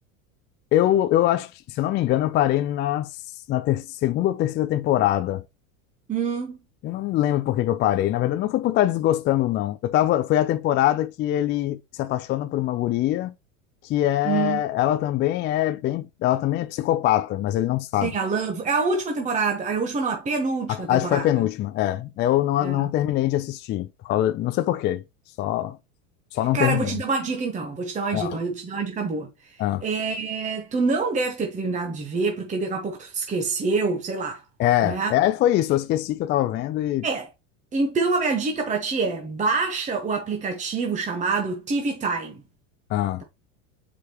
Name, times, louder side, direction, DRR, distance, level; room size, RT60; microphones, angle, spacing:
voice 1, 0.7-3.2 3.5-5.4 6.8-13.3 13.8-18.2 20.7-25.0 25.4-25.8 26.3-27.0 28.1-28.4 29.6-29.8 34.6-37.1 42.9-43.2, left 13 dB, 30° left, 0.4 m, -23 dB
voice 2, 6.1-6.6 14.2-14.6 18.0-21.3 22.6-22.9 26.5-29.3 29.8-34.4 34.8-35.1 37.0-37.3 37.7-42.4, right 4 dB, 20° right, 1.0 m, -26 dB
6.6 x 4.9 x 3.0 m
supercardioid pair, 120°, 41 cm